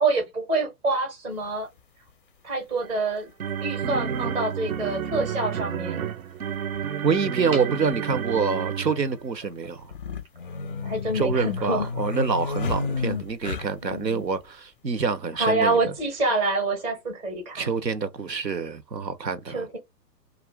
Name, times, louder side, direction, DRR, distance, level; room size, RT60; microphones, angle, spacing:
voice 1, 0.0-1.7 2.4-3.3 3.6-6.1 10.8-11.9 13.9-14.3 15.3-17.7 19.5-19.8, right 2 dB, 10° right, 0.5 m, -26 dB
sound 1, 1.4-1.5 3.0-3.1 4.5-4.6 4.8-4.9 6.7-6.9 7.1-7.2 7.9-8.4 9.8-14.0, left 4 dB, 35° left, 0.4 m, -31 dB
sound 2, 2.8-9.3, right 8 dB, 60° right, 0.6 m, -30 dB
voice 2, 7.0-9.9 11.1-15.8 17.5-19.7, right 5 dB, 90° right, 0.7 m, -26 dB
2.4 x 2.3 x 3.4 m
figure-of-eight pair, 120°, 49 cm